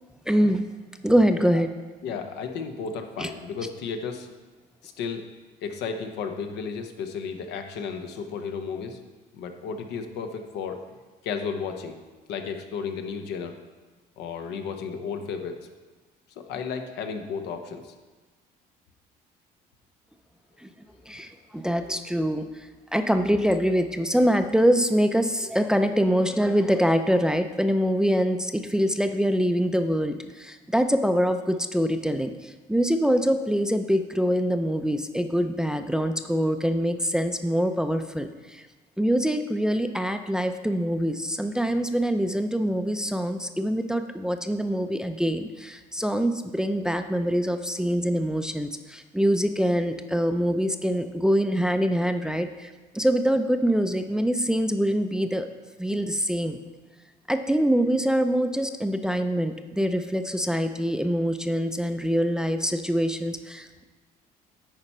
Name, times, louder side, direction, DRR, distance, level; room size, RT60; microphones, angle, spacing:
voice 1, 0.3-0.6 1.0-1.7 3.2-3.3 20.6-20.7 21.1-22.5 22.9-38.6 39.0-52.7 52.9-55.5 55.8-56.6 57.3-63.8, equal, 5° right, 8 dB, 0.4 m, -24 dB
voice 2, 2.0-4.3 4.8-5.3 5.6-9.0 9.3-10.8 11.2-12.0 12.3-13.6 14.2-15.7 16.4-17.9, left 6 dB, 85° left, 6 dB, 0.9 m, -33 dB
9.0 x 4.4 x 5.4 m, 1.3 s
cardioid pair, 110°, 17 cm